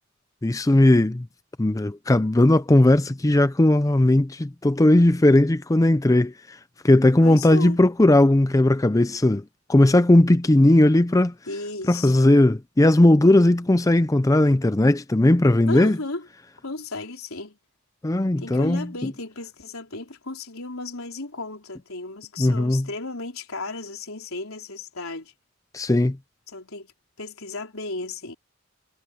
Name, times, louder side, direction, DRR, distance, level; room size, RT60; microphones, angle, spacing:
voice 1, 0.4-1.3 1.6-6.6 6.8-9.4 9.7-11.3 11.9-16.0 18.0-18.9 22.4-22.9 25.7-26.2, left 1 dB, 15° left, 0.5 m, -18 dB
voice 2, 7.2-7.8 11.5-12.4 15.7-16.3 16.6-17.6 18.4-25.3 26.5-26.9 27.2-28.4, left 2 dB, 80° left, 4.1 m, -34 dB
head